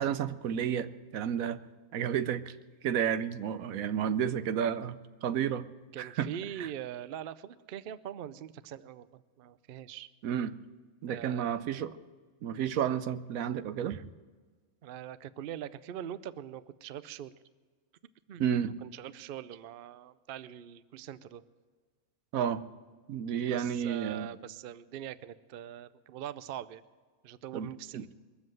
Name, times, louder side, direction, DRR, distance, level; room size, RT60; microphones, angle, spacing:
voice 1, 0.0-1.6 1.9-2.6 2.8-5.7 6.0-6.3 6.6-6.7 10.2-10.5 11.0-12.0 12.4-14.0 18.4-18.7 22.3-22.6 23.1-24.3 27.5-28.0, right 8 dB, 85° right, 13 dB, 1.1 m, -31 dB
voice 2, 5.9-10.1 11.1-11.8 13.9-14.1 14.8-17.3 18.3-18.4 18.8-21.4 23.5-26.8 27.2-28.1, right 10 dB, 60° right, 15 dB, 0.6 m, -43 dB
22.0 x 7.6 x 7.7 m, 1.5 s
omnidirectional pair, 1.4 m